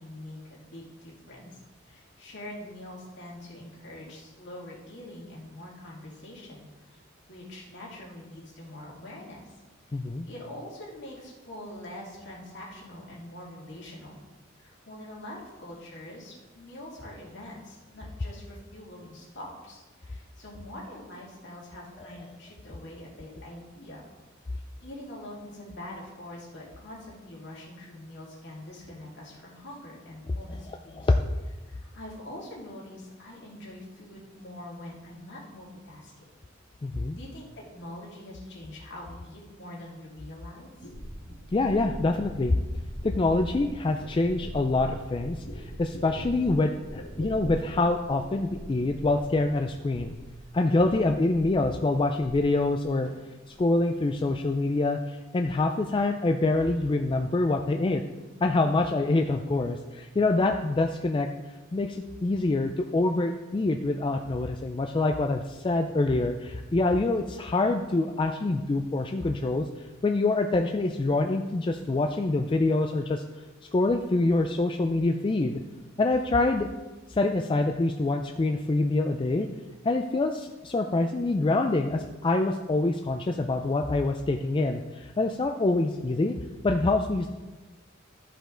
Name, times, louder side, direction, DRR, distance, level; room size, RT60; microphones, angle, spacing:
voice 1, 0.0-1.6 1.9-7.0 7.3-9.6 9.9-14.2 14.6-24.1 24.5-31.1 31.6-36.1 37.1-40.9, left 1 dB, 60° left, -4 dB, 2.5 m, -44 dB
voice 2, 9.9-10.3 30.9-31.1 36.8-37.2 41.5-42.6 43.0-50.2 50.5-53.1 53.5-58.0 58.4-61.3 61.7-73.2 73.7-75.6 76.0-76.7 77.1-79.5 79.8-86.3 86.6-87.3, left 2 dB, 25° left, 4 dB, 0.3 m, -25 dB
sound 1, 40.8-50.5 50.8-51.6 51.9-52.8 53.0-53.6, equal, 85° left, 2.0 m, -42 dB
13.0 x 5.0 x 3.8 m, 1.2 s
head